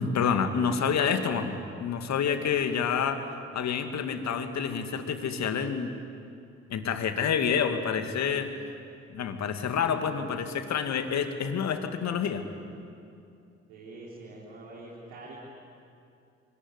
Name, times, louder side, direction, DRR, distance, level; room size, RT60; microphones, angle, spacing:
voice 1, 0.0-5.9 6.7-8.5 9.1-12.4, left 6 dB, 50° left, 7 dB, 2.3 m, -28 dB
voice 2, 13.7-15.3, right 2 dB, 70° right, -6 dB, 4.1 m, -45 dB
26.0 x 22.5 x 9.9 m, 2.6 s
figure-of-eight pair, 45°, 34 cm